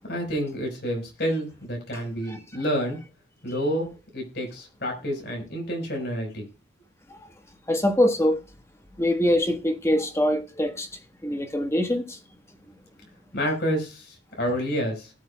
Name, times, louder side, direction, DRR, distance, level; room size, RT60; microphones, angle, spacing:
voice 1, 0.1-3.0 3.4-6.5 13.3-15.1, equal, 60° left, 4.5 m, -29 dB
voice 2, 7.7-8.4 9.0-10.9 11.2-12.2, left 1 dB, 15° left, 1.3 m, -23 dB
19.5 x 7.4 x 2.2 m
head